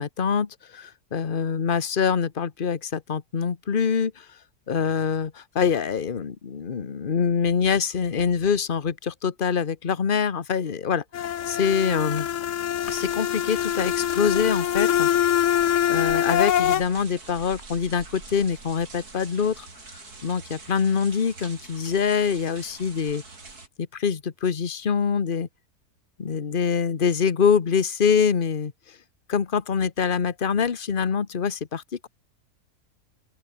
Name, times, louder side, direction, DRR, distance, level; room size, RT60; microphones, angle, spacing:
voice 1, 0.0-4.2 4.7-12.3 12.9-15.1 15.9-19.7 20.2-23.2 23.9-25.5 26.2-28.7 29.3-32.1, left 6 dB, 35° left, 1.2 m, -25 dB
sound 1, 11.1-16.8, left 10 dB, 60° left, 1.0 m, -24 dB
sound 2, 12.8-23.7, right 3 dB, 70° right, 4.3 m, -45 dB
open air
omnidirectional pair, 1.7 m